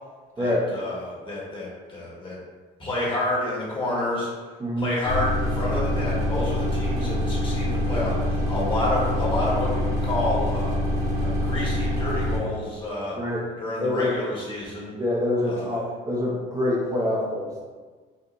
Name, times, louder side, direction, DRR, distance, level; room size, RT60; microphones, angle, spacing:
voice 1, 0.4-2.4 2.8-4.3 4.8-10.7 11.2-13.2 13.6-14.9 15.4-15.7, left 2 dB, 30° left, -6 dB, 1.4 m, -29 dB
sound 1, 5.0-12.4, left 1 dB, 65° right, 0.9 m, -25 dB
voice 2, 15.0-17.6, left 1 dB, 20° right, -5 dB, 0.6 m, -25 dB
4.5 x 2.5 x 2.5 m, 1.4 s
cardioid pair, 110°, 17 cm